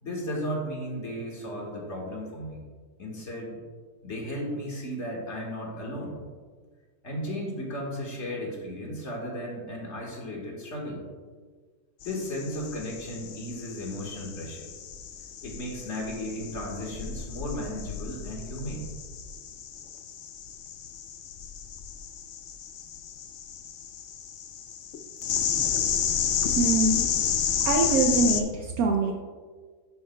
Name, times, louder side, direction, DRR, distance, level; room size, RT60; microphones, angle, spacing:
voice 1, 0.0-2.6 3.0-3.6 4.0-6.2 7.0-11.0 12.0-14.7 15.4-18.9, equal, 45° left, -2 dB, 1.8 m, -35 dB
sound 1, 12.0-28.4, left 8 dB, 65° left, 0.7 m, -31 dB
voice 2, 26.5-27.0 27.6-29.1, right 4 dB, 70° right, 3 dB, 1.0 m, -24 dB
10.5 x 7.5 x 2.2 m, 1.5 s
omnidirectional pair, 1.7 m